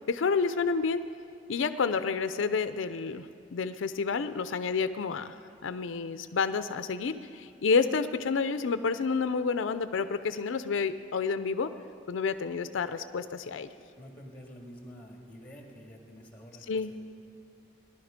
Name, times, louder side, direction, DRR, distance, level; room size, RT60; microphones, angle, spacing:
voice 1, 0.1-1.0 1.5-3.3 3.5-5.4 5.6-11.7 12.1-13.7 16.7-16.9, left 5 dB, 80° left, 11 dB, 0.5 m, -29 dB
voice 2, 14.0-16.9, equal, 10° left, 0 dB, 1.9 m, -48 dB
18.5 x 11.0 x 5.1 m, 2.6 s
head